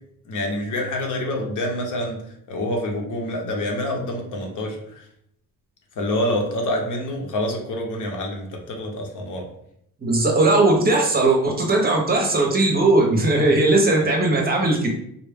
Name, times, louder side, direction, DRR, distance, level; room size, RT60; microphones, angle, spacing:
voice 1, 0.3-2.2 2.5-5.0 6.0-9.5 14.0-14.1, left 1 dB, 65° left, 1 dB, 0.9 m, -27 dB
voice 2, 10.0-14.9, right 2 dB, 30° right, 0 dB, 0.6 m, -18 dB
3.9 x 2.1 x 3.4 m, 0.72 s
cardioid pair, 150°, 33 cm